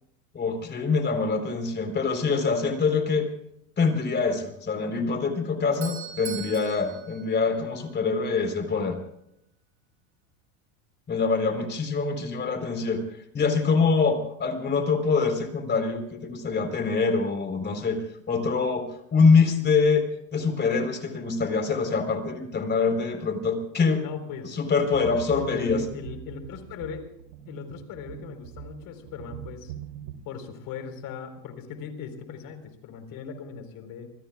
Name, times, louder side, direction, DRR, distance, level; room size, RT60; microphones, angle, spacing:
voice 1, 0.3-3.3 3.8-9.0 11.1-13.0 13.3-18.0 18.3-18.9 19.1-20.1 20.3-24.0 24.5-25.8, left 4 dB, 25° left, 6 dB, 4.0 m, -24 dB
Doorbell, 5.4-8.2, right 9 dB, 30° right, 6.0 m, -41 dB
voice 2, 24.0-24.6 25.3-27.0 27.5-29.7 30.2-34.1, left 6 dB, 45° left, 7 dB, 4.3 m, -39 dB
sound 1, 24.9-30.1, right 11 dB, 80° right, 3.8 m, -42 dB
27.0 x 20.5 x 2.4 m, 0.77 s
supercardioid pair, 130°, 45 cm